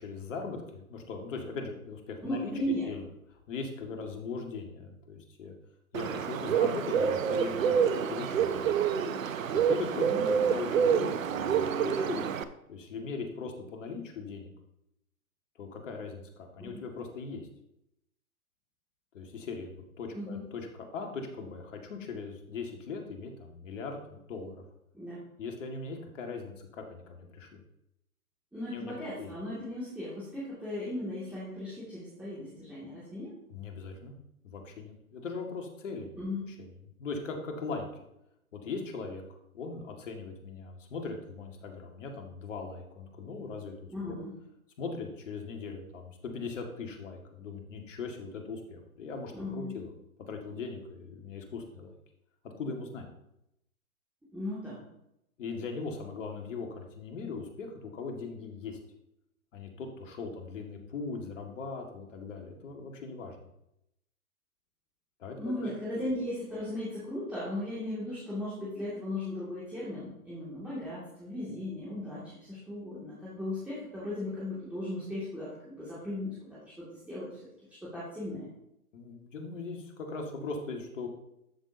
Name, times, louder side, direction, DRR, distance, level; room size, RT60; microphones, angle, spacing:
voice 1, 0.0-2.5 2.9-3.0 3.5-5.5 5.9-8.7 9.5-10.1 10.5-12.2 12.7-14.5 15.6-17.5 19.1-20.7 20.9-24.6 25.4-27.6 28.7-28.9 29.2-29.3 33.5-34.1 34.4-36.2 36.5-36.7 37.0-37.9 38.5-43.9 44.8-49.9 50.3-51.9 52.6-53.0 55.4-58.8 59.5-63.4 65.2-65.7 78.9-81.1, left 4 dB, 55° left, 3 dB, 2.1 m, -39 dB
voice 2, 2.2-2.9 10.0-10.5 16.6-16.7 20.1-20.5 24.9-25.2 28.5-33.3 36.2-36.5 43.9-44.3 49.3-49.7 54.3-54.8 65.4-76.6 77.0-77.3 77.8-78.5, left 1 dB, 5° right, -10 dB, 2.4 m, -37 dB
Bird, 5.9-12.4, right 7 dB, 65° right, 0.8 m, -27 dB
12.5 x 6.1 x 2.8 m, 0.81 s
hypercardioid pair, 130°, 44 cm